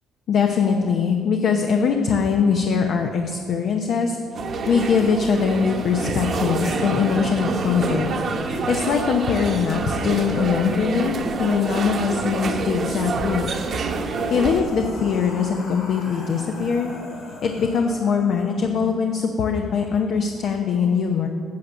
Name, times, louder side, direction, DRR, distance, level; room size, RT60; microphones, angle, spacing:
voice 1, 0.3-4.2 4.7-8.1 8.4-13.5 14.0-16.9 17.4-21.3, left 6 dB, 65° left, 3 dB, 0.8 m, -22 dB
sound 1, 4.3-14.6, right 3 dB, 50° right, 1.1 m, -27 dB
sound 2, 13.8-19.0, left 1 dB, 90° left, 2.5 m, -39 dB
8.7 x 7.6 x 6.3 m, 2.2 s
cardioid pair, 85°, 0 cm